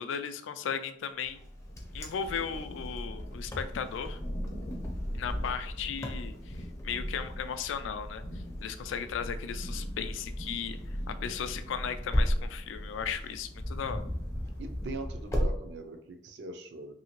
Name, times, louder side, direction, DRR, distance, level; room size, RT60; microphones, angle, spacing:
voice 1, 0.0-1.4 1.9-4.2 5.1-10.8 11.1-14.0, left 7 dB, 80° left, 10 dB, 0.3 m, -36 dB
Thunder / Rain, 1.3-15.3, equal, 55° left, 0.8 m, -41 dB
Wind, 1.4-15.5, equal, 15° left, 0.4 m, -36 dB
voice 2, 5.0-5.4 14.6-16.9, right 3 dB, 60° right, 5 dB, 0.4 m, -42 dB
2.8 x 2.7 x 2.9 m, 0.72 s
head